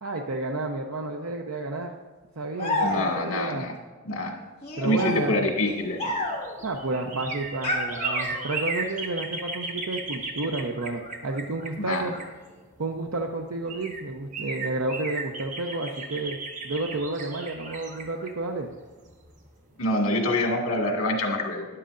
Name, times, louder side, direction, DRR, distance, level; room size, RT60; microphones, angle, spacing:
voice 1, 0.0-1.9 2.4-3.7 4.8-5.5 6.6-12.1 12.8-16.4 16.6-18.7, right 2 dB, 80° right, 2 dB, 0.7 m, -31 dB
sound 1, 2.6-3.4 4.6-6.6 7.6-8.7, left 2 dB, 30° left, 1.8 m, -30 dB
voice 2, 2.8-3.7 4.0-4.3 4.8-6.1 11.8-12.1 19.8-21.7, left 1 dB, 85° left, 1 dB, 2.0 m, -26 dB
sound 2, 6.0-12.8 13.4-13.5 13.7-19.5 19.8-19.9, right 3 dB, 35° right, 1.1 m, -36 dB
12.5 x 10.0 x 2.6 m, 1.4 s
head